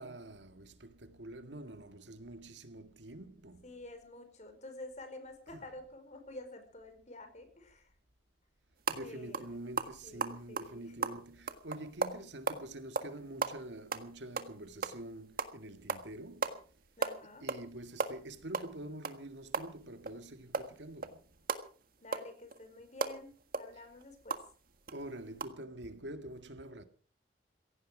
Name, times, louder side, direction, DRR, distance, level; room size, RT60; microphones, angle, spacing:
voice 1, 0.0-3.7 5.5-5.6 8.9-16.6 17.4-21.2 24.9-26.8, right 1 dB, 85° right, 1.9 m, -46 dB
voice 2, 3.6-7.9 9.0-9.5 10.0-11.1 17.0-17.4 22.0-24.4, left 1 dB, 40° left, 4.9 m, -49 dB
sound 1, 8.8-9.0 9.3-9.5 9.8-12.6 13.0-13.1 13.4-15.0 15.4-15.6 15.9-16.1 16.4-16.6 16.8-17.7 17.9-20.2 20.5-24.5 24.9-25.0 25.3-25.4, right 4 dB, 55° right, 1.6 m, -36 dB
16.5 x 16.5 x 5.0 m
head